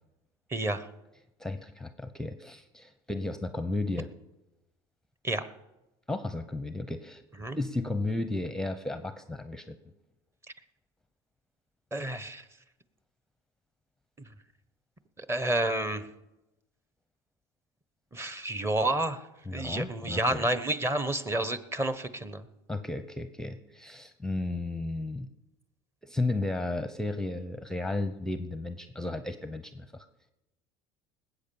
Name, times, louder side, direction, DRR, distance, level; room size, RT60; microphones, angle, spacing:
voice 1, 0.5-0.9 5.2-5.4 7.4-7.6 11.9-12.5 14.2-14.3 15.2-16.0 18.1-19.2 19.5-22.4, right 1 dB, 20° right, 13 dB, 1.1 m, -30 dB
voice 2, 1.4-4.1 6.1-7.2 7.5-9.8 19.5-20.5 22.7-25.3 26.0-30.1, left 2 dB, 5° left, 10 dB, 0.8 m, -34 dB
19.5 x 8.3 x 7.0 m, 0.98 s
supercardioid pair, 100°, 13 cm